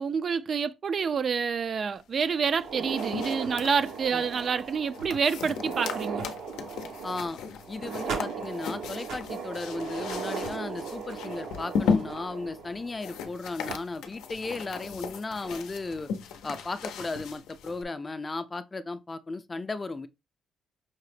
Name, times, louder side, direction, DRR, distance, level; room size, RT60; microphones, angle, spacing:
voice 1, 0.0-6.3, right 6 dB, 50° right, 0.3 m, -28 dB
sound 1, 2.5-17.8, left 6 dB, 90° left, 0.5 m, -36 dB
sound 2, 2.5-13.3 13.6-13.7 14.5-14.6 15.2-15.3 16.6-16.9, right 5 dB, 85° right, 0.9 m, -37 dB
voice 2, 7.0-7.4 7.7-16.1 16.4-20.1, left 3 dB, 25° left, 0.4 m, -35 dB
5.6 x 2.0 x 3.2 m
cardioid pair, 90°, 0 cm